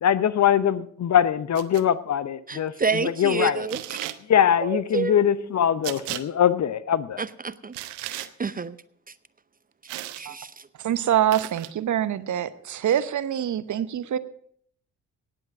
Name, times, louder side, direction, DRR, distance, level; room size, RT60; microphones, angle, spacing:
voice 1, 0.0-3.7 4.3-7.2, left 9 dB, 40° left, 17 dB, 0.7 m, -22 dB
sound 1, 1.6-1.8 3.7-4.2 5.8-6.2 7.7-8.3 9.9-10.3 11.3-11.7, right 16 dB, 70° right, 0.8 m, -34 dB
voice 2, 2.5-4.0 4.6-5.2 7.2-7.8 8.1-8.8 10.2-10.5, right 5 dB, 20° right, 15 dB, 0.6 m, -29 dB
voice 3, 10.8-14.2, right 10 dB, 45° right, 15 dB, 0.9 m, -25 dB
18.0 x 7.9 x 4.8 m, 0.63 s
figure-of-eight pair, 40°, 43 cm